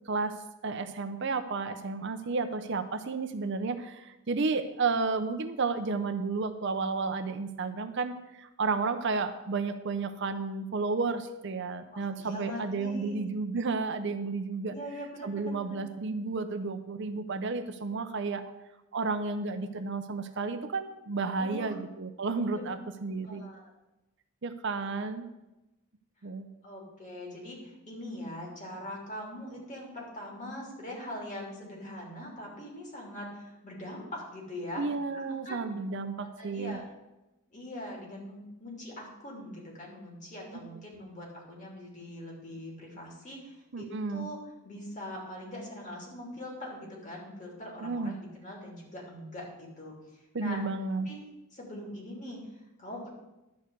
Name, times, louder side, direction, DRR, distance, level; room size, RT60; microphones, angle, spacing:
voice 1, 0.6-14.7 15.2-18.4 18.9-23.5 24.4-25.3 26.2-26.5 34.8-36.8 43.7-44.3 47.8-48.1 50.3-51.1, right 4 dB, 55° right, 9 dB, 0.6 m, -32 dB
voice 2, 11.9-13.2 14.7-15.8 21.2-21.8 22.5-22.7 23.2-23.6 24.8-25.0 26.6-34.8 35.1-35.6 36.2-36.8 37.5-44.4 44.6-50.6 51.0-51.2 51.5-53.1, left 1 dB, 35° left, -1 dB, 3.0 m, -42 dB
11.5 x 4.8 x 8.0 m, 0.98 s
head